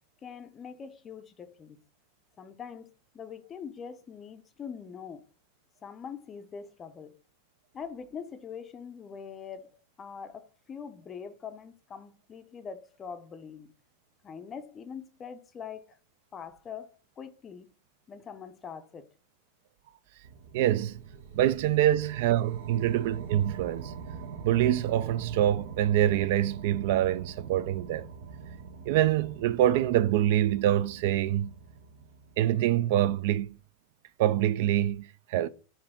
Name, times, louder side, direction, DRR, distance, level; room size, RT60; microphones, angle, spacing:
voice 1, 0.2-1.8 2.4-5.3 5.8-7.2 7.7-13.7 14.2-16.0 16.3-17.7 18.1-19.1, left 6 dB, 20° left, 0.5 m, -43 dB
sound 1, 20.2-32.8, right 5 dB, 80° right, 0.7 m, -44 dB
voice 2, 20.5-21.0 21.3-23.9 24.4-28.1 28.8-31.5 32.4-33.5 34.2-35.5, right 12 dB, 60° right, 0.3 m, -25 dB
4.8 x 2.7 x 3.5 m
supercardioid pair, 140°, 0 cm